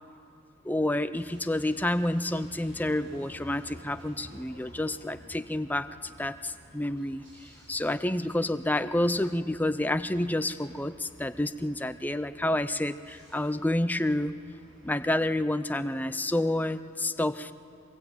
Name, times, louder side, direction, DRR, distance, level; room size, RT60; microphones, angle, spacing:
voice 1, 0.6-5.9 6.2-7.2 7.7-14.4 14.8-17.5, left 1 dB, 10° left, 11 dB, 0.6 m, -29 dB
sound 1, 1.2-15.8, right 1 dB, 80° right, 6.8 m, -53 dB
23.5 x 22.0 x 9.0 m, 2.6 s
head